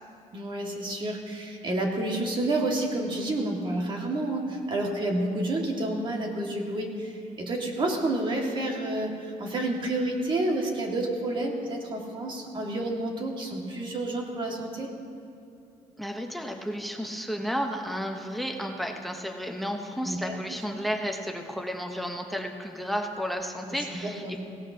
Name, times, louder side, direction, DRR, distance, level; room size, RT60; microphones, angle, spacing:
voice 1, 0.3-14.9 20.0-20.3 23.7-24.4, right 1 dB, 35° right, 0 dB, 1.9 m, -29 dB
voice 2, 16.0-24.4, equal, ahead, 4 dB, 0.9 m, -32 dB
18.5 x 16.5 x 2.8 m, 2.6 s
cardioid pair, 120°, 13 cm